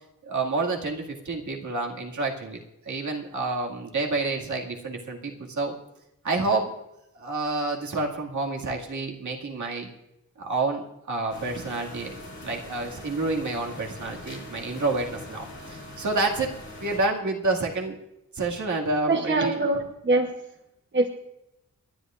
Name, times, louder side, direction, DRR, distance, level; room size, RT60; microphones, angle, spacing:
voice 1, 0.2-2.6 2.8-5.7 6.2-6.7 7.1-9.9 10.4-16.5 16.8-18.0 18.3-19.7, right 3 dB, 70° right, -1 dB, 2.2 m, -29 dB
sound 1, 11.3-17.0, left 1 dB, 40° left, 5.0 m, -42 dB
voice 2, 19.1-20.3 20.9-21.1, right 2 dB, 40° right, 4 dB, 1.0 m, -23 dB
29.5 x 11.5 x 2.5 m, 0.89 s
wide cardioid pair, 155°, 30 cm